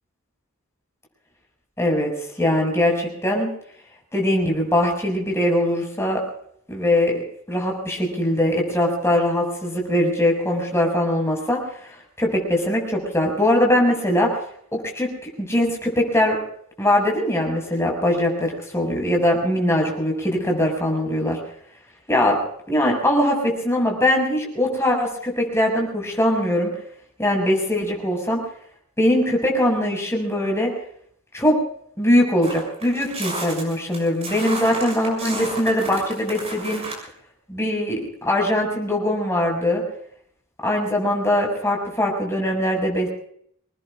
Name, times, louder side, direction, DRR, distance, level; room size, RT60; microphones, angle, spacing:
voice 1, 1.8-3.5 4.1-6.2 6.7-7.1 7.5-14.4 14.7-16.4 16.8-21.4 22.1-22.4 22.7-26.7 27.2-28.4 29.0-30.7 31.3-31.6 32.0-36.8 37.5-39.8 40.6-43.1, left 1 dB, 10° left, 0 dB, 6.2 m, -21 dB
sound 1, 32.4-37.0, right 2 dB, 30° right, 6.8 m, -32 dB
26.5 x 20.0 x 2.5 m, 0.66 s
head